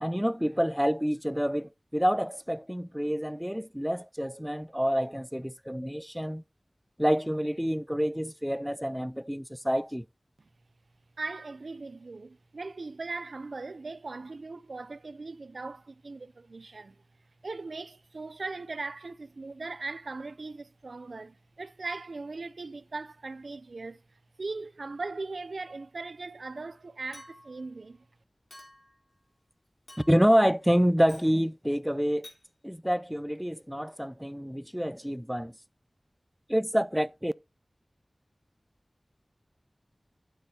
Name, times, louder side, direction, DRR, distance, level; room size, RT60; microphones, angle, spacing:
voice 1, 0.0-6.4 7.0-10.1 30.1-32.3 32.6-35.5 36.5-37.3, equal, 5° right, 0.4 m, -27 dB
voice 2, 11.2-17.0 17.4-28.1, right 3 dB, 90° right, 0.4 m, -39 dB
Chink clink, 27.1-27.6 28.5-29.0 29.9-30.4 31.1-31.3 32.2-32.4, left 1 dB, 75° left, 3.5 m, -51 dB
10.0 x 8.9 x 2.8 m
wide cardioid pair, 55°, 0 cm